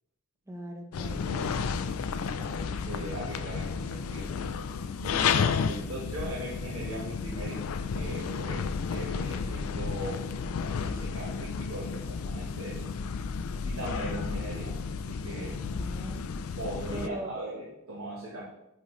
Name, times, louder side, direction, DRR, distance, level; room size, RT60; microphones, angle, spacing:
voice 1, 0.5-1.2 15.4-16.3 16.9-17.3, right 1 dB, 15° right, 3 dB, 0.8 m, -40 dB
sound 1, 0.9-17.1, left 5 dB, 85° left, 0.4 m, -32 dB
voice 2, 1.2-1.9 2.3-4.2 5.0-7.6 7.9-10.3 10.8-12.8 13.6-14.8 15.1-15.6 16.6-18.4, right 1 dB, 75° right, -5 dB, 1.3 m, -39 dB
8.4 x 3.9 x 3.1 m, 0.88 s
head